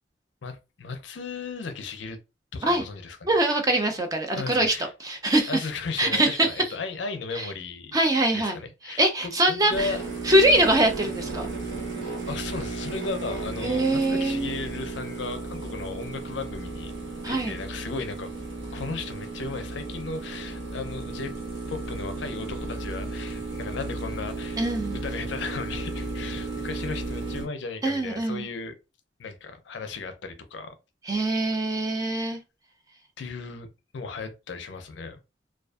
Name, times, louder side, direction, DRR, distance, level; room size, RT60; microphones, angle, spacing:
voice 1, 0.4-2.2 2.5-3.3 4.4-4.9 5.5-8.0 8.3-10.3 12.3-16.9 17.2-18.3 18.7-21.3 21.7-24.6 25.0-28.7 29.2-30.8 32.2-32.4 33.2-33.7 33.9-35.2, left 4 dB, 65° left, 0.4 m, -35 dB
voice 2, 3.3-4.7 5.0-5.5 6.0-6.5 7.4-7.5 7.9-8.6 8.8-9.9 10.2-11.5 13.6-14.5 17.2-17.5 24.6-25.0 27.8-28.5 31.1-32.4, right 1 dB, 20° right, 0.3 m, -23 dB
sound 1, 9.7-27.5, right 3 dB, 65° right, 0.8 m, -34 dB
2.4 x 2.3 x 2.3 m
head